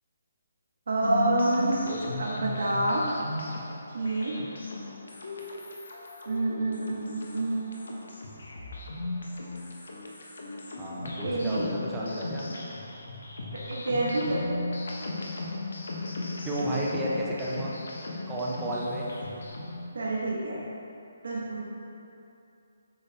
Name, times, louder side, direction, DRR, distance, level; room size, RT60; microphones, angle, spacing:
voice 1, 0.9-1.8 2.2-3.1 3.9-4.4 6.2-7.9 11.2-11.7 12.5-12.7 13.7-14.6 19.9-20.6 21.2-21.6, right 2 dB, 60° right, -6 dB, 1.2 m, -28 dB
sound 1, 1.0-19.9, left 2 dB, 80° left, 1.1 m, -37 dB
voice 2, 10.8-12.5 16.4-17.7 18.3-19.0, right 1 dB, 10° right, -6 dB, 0.6 m, -32 dB
8.1 x 4.0 x 4.1 m, 2.7 s
hypercardioid pair, 175°, 0 cm